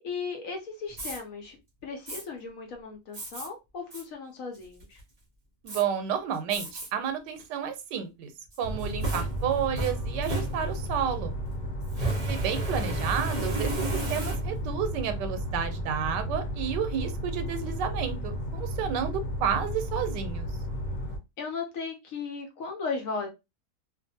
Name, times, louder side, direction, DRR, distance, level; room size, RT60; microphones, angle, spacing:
voice 1, 0.0-1.6 1.8-5.0 11.9-12.4 21.4-23.3, left 4 dB, 65° left, 0.9 m, -36 dB
Fire, 0.9-1.2 2.1-2.2 3.1-3.5 3.9-4.0 4.5-5.0 5.7-5.8 6.5-6.9 7.4-7.5 8.5-11.0 11.9-14.7, right 1 dB, 35° right, 0.6 m, -33 dB
voice 2, 5.6-8.3 8.6-11.3 12.3-20.5, right 8 dB, 90° right, 1.2 m, -31 dB
sound 1, 8.6-21.2, equal, 80° left, 1.2 m, -33 dB
2.5 x 2.5 x 2.6 m
omnidirectional pair, 1.8 m